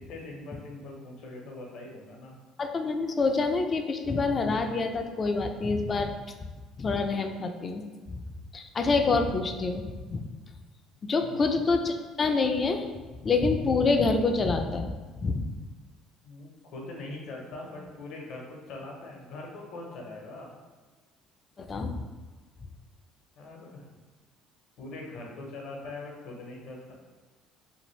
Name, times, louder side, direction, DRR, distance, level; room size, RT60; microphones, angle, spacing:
voice 1, 0.0-2.3 11.2-11.4 16.2-20.5 23.4-24.0 24.8-26.9, left 2 dB, 65° left, -1 dB, 0.7 m, -42 dB
voice 2, 2.6-6.1 6.8-7.8 8.1-8.2 8.5-10.2 11.0-12.9 13.2-15.5 21.6-22.0, left 3 dB, 40° left, 6 dB, 0.3 m, -27 dB
2.6 x 2.5 x 3.0 m, 1.3 s
hypercardioid pair, 65°, 0 cm